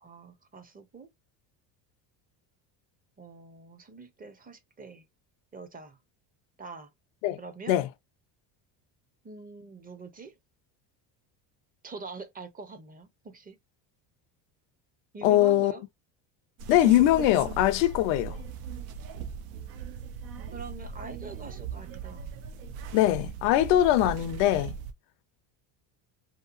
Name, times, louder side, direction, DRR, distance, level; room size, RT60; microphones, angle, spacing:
voice 1, 0.0-1.1 3.2-5.1 5.5-6.0 6.6-6.9 7.4-7.8 9.2-10.3 11.8-13.6 15.1-15.8 20.5-22.3, right 4 dB, 20° right, 0.6 m, -44 dB
voice 2, 15.2-15.7 16.7-18.4 22.9-24.8, left 13 dB, 80° left, 0.6 m, -22 dB
sound 1, 16.6-24.9, right 6 dB, 75° right, 0.7 m, -39 dB
2.8 x 2.2 x 2.5 m
supercardioid pair, 90°, 49 cm